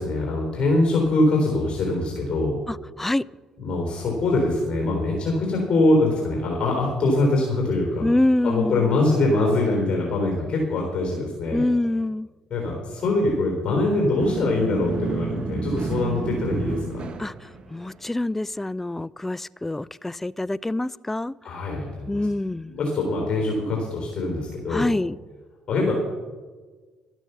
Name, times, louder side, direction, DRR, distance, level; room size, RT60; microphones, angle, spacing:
voice 1, 0.0-2.6 3.6-8.1 8.4-11.6 12.5-17.0 21.4-22.2 22.7-24.9 25.7-25.9, left 2 dB, 50° left, 3.7 m, -23 dB
voice 2, 2.7-3.2 8.0-9.0 11.5-12.3 17.2-17.3 17.7-21.3 22.1-22.7 24.7-25.2, left 1 dB, 10° left, 0.3 m, -25 dB
sound 1, 14.2-18.1, right 4 dB, 50° right, 1.5 m, -30 dB
12.0 x 9.1 x 6.8 m
supercardioid pair, 65°, 2 cm